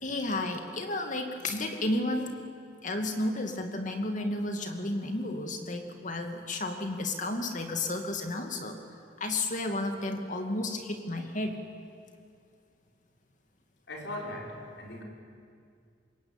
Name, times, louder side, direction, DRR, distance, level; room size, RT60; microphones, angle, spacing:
voice 1, 0.0-2.4 2.8-8.8 9.2-11.6, left 2 dB, 45° left, 5 dB, 2.4 m, -32 dB
voice 2, 13.9-15.0, left 1 dB, 70° left, -1 dB, 5.4 m, -39 dB
25.5 x 22.0 x 9.0 m, 2.3 s
head